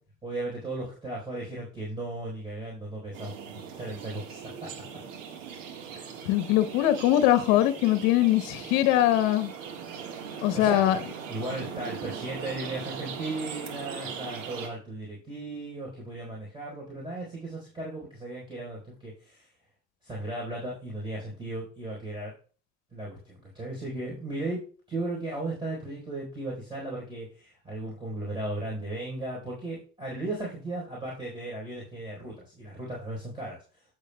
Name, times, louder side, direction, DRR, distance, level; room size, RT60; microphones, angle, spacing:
voice 1, 0.2-4.7 10.5-10.9 11.3-19.5 20.0-22.3 22.9-33.6, right 2 dB, 15° right, 4.1 m, -36 dB
sound 1, 3.1-14.7, right 7 dB, 85° right, 1.6 m, -40 dB
voice 2, 6.3-9.5 10.4-11.0, left 13 dB, 70° left, 0.9 m, -22 dB
15.0 x 6.7 x 2.2 m
hypercardioid pair, 70°, 37 cm